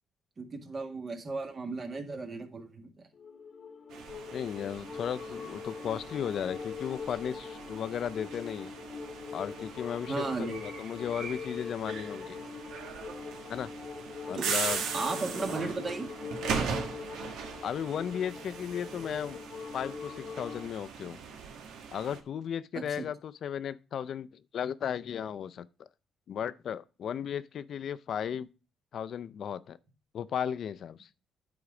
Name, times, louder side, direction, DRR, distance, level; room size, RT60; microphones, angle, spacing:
voice 1, 0.4-3.1 10.1-10.6 13.3-13.4 14.3-14.5 14.9-16.1 22.7-23.0, right 3 dB, 40° right, 1.7 m, -35 dB
sound 1, 3.1-20.7, left 5 dB, 50° left, 1.0 m, -43 dB
sound 2, 3.9-22.2, right 6 dB, 85° right, 1.2 m, -39 dB
voice 2, 4.3-8.7 9.3-12.4 13.5-13.7 14.3-14.8 17.6-19.4 19.7-21.2 21.9-25.9 26.3-28.5 28.9-29.8 30.1-31.1, left 8 dB, 65° left, 0.5 m, -35 dB
9.7 x 4.0 x 4.9 m
cardioid pair, 90°, 0 cm